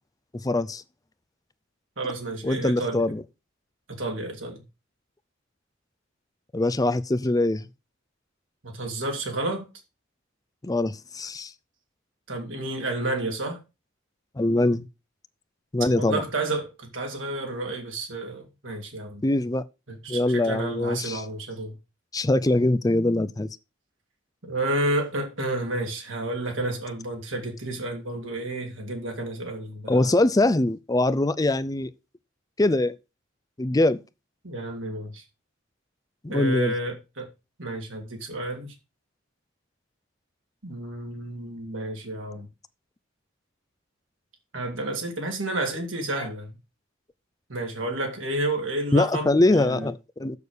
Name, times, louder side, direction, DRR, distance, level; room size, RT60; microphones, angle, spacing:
voice 1, 0.4-0.8 2.4-3.2 6.5-7.7 10.6-11.5 14.4-14.9 15.7-16.2 19.2-19.6 20.1-21.2 22.1-23.5 29.9-31.9 32.6-33.0 33.6-34.0 36.2-36.7 48.9-50.4, left 2 dB, 20° left, 0.5 m, -23 dB
voice 2, 2.0-3.1 3.9-4.6 8.6-9.7 12.3-13.6 15.9-19.2 19.9-21.8 24.4-30.1 34.4-35.2 36.3-37.3 37.6-38.7 40.6-42.5 44.5-46.6 47.5-49.9, right 2 dB, 85° right, 3.0 m, -31 dB
6.9 x 6.6 x 6.5 m
head